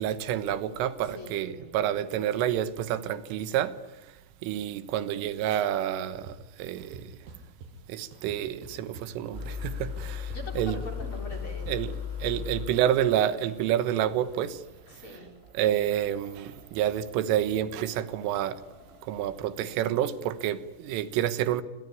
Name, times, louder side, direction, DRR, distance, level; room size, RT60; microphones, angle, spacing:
voice 1, 0.0-3.7 4.4-7.0 7.9-10.8 11.7-11.9 12.2-14.6 15.6-18.6 19.1-21.6, right 11 dB, 85° right, 3.8 m, -28 dB
voice 2, 1.0-1.8 10.3-11.8 14.9-15.4, left 2 dB, 30° left, 4.1 m, -42 dB
sound 1, 6.3-6.4 6.8-7.7 8.1-9.2 9.5-11.8, right 4 dB, 60° right, 6.6 m, -46 dB
sound 2, 9.3-19.4, left 7 dB, 10° right, 6.9 m, -39 dB
27.0 x 22.5 x 9.5 m
omnidirectional pair, 5.6 m